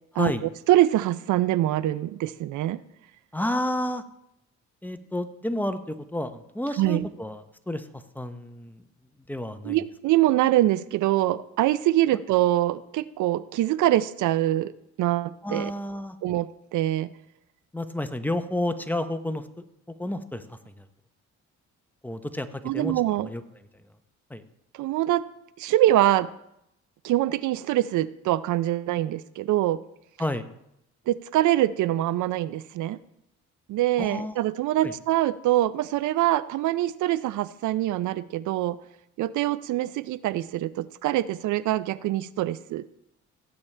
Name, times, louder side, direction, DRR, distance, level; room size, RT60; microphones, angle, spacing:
voice 1, 0.7-2.8 6.8-7.1 9.6-14.7 15.0-15.7 16.2-17.1 22.6-23.3 24.7-25.2 25.6-26.3 27.0-29.8 31.1-33.0 33.7-38.8 39.2-42.9, right 14 dB, 80° right, 17 dB, 0.5 m, -24 dB
voice 2, 3.3-4.0 4.8-8.8 9.3-9.8 15.4-16.2 17.7-19.6 20.0-20.8 22.0-23.4 24.3-24.4 30.2-30.5 34.0-34.4 34.8-34.9, left 1 dB, 5° left, 9 dB, 0.8 m, -31 dB
17.0 x 8.6 x 3.3 m, 0.80 s
cardioid pair, 90°, 30 cm